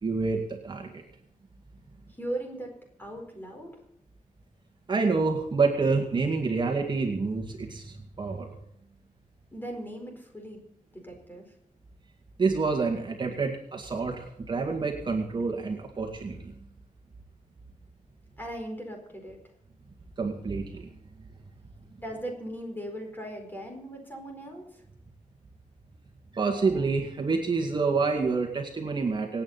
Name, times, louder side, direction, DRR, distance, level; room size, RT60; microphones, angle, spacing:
voice 1, 0.0-1.0 4.9-8.5 12.4-16.6 20.2-20.9 26.3-29.4, right 4 dB, 35° right, 2 dB, 2.1 m, -28 dB
voice 2, 2.1-2.7 3.0-3.8 9.5-11.5 18.4-19.4 22.0-24.8, right 1 dB, 15° left, 2 dB, 4.5 m, -38 dB
26.0 x 9.0 x 4.2 m, 0.76 s
wide cardioid pair, 150°, 13 cm